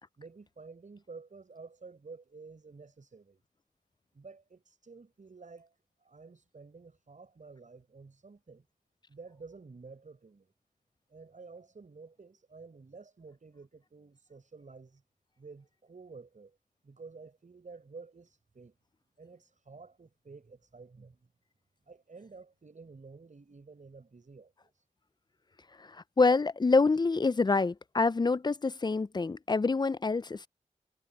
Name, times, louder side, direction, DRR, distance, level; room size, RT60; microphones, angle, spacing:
voice 1, 0.2-3.4 4.1-5.7 6.0-8.6 9.1-10.5 11.1-15.0 15.4-16.6 16.8-18.8 19.2-21.3 21.9-24.8, right 4 dB, 60° right, 5.9 m, -51 dB
voice 2, 25.8-30.5, left 3 dB, 30° left, 0.4 m, -26 dB
cardioid pair, 40°, 15 cm